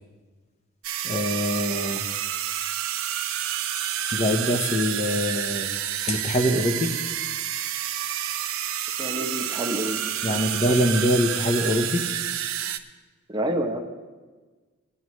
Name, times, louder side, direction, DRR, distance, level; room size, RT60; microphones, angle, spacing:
sound 1, 0.8-12.8, right 10 dB, 75° right, 0.7 m, -29 dB
voice 1, 1.0-2.0 4.1-5.7 6.0-6.9 10.2-12.0, equal, 30° left, 4 dB, 0.9 m, -24 dB
voice 2, 9.0-10.4 13.3-13.8, right 1 dB, 20° right, 2 dB, 0.8 m, -29 dB
19.5 x 9.5 x 3.1 m, 1.4 s
head